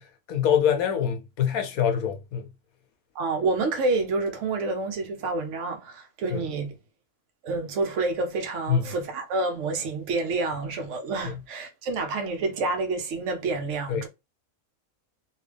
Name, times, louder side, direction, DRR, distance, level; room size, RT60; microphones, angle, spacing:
voice 1, 0.0-2.5 6.3-6.5 8.7-8.8 11.2-11.4 13.9-14.1, left 8 dB, 70° left, 1.2 m, -25 dB
voice 2, 3.1-6.8 7.4-14.1, right 3 dB, 60° right, 1.0 m, -28 dB
3.2 x 2.7 x 3.3 m
omnidirectional pair, 1.6 m